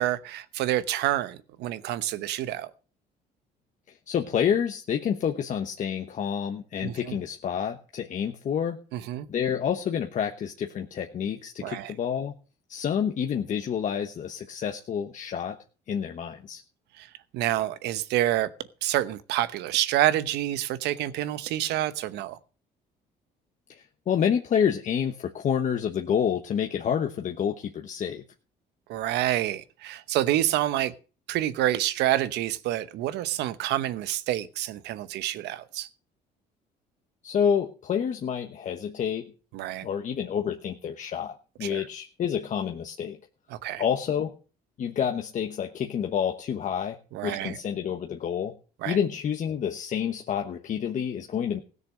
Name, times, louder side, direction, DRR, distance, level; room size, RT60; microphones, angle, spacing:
voice 1, 0.0-2.7 6.8-7.2 8.9-9.3 11.6-11.9 17.0-17.1 17.3-18.5 18.8-22.4 28.9-30.9 31.3-35.9 39.5-39.9 41.6-41.9 43.5-43.8 47.1-47.6 48.8-49.0, right 13 dB, 85° right, 1.0 m, -28 dB
voice 2, 4.1-8.8 9.3-12.3 12.7-15.6 15.9-16.6 23.7-28.2 37.2-39.3 39.8-43.2 43.8-44.3 44.8-48.6 48.8-51.6, left 8 dB, 50° left, 1.1 m, -28 dB
16.5 x 6.8 x 6.2 m
cardioid pair, 110°, 17 cm